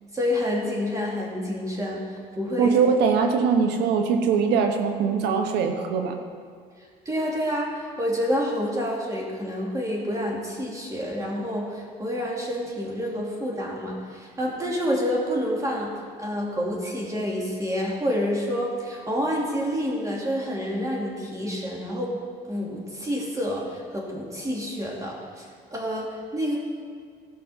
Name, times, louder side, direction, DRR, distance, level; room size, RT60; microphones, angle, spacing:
voice 1, 0.1-2.0 2.3-2.8 7.0-15.9 16.2-22.1 22.5-26.6, equal, 20° right, -3 dB, 2.7 m, -28 dB
voice 2, 2.6-6.2, right 6 dB, 85° right, 5 dB, 1.2 m, -22 dB
15.5 x 5.8 x 5.7 m, 2.1 s
cardioid pair, 110°, 17 cm